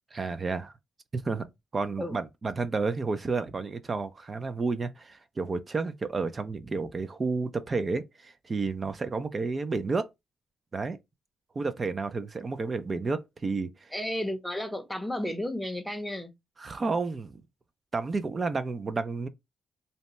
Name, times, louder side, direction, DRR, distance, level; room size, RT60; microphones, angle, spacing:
voice 1, 0.1-0.7 1.1-1.5 1.7-10.1 10.7-11.0 11.6-13.9 16.6-17.4 17.9-19.3, right 4 dB, 30° right, 0.4 m, -31 dB
voice 2, 13.9-16.3, left 1 dB, ahead, 0.7 m, -33 dB
2.7 x 2.1 x 3.0 m
cardioid pair, 90°, 0 cm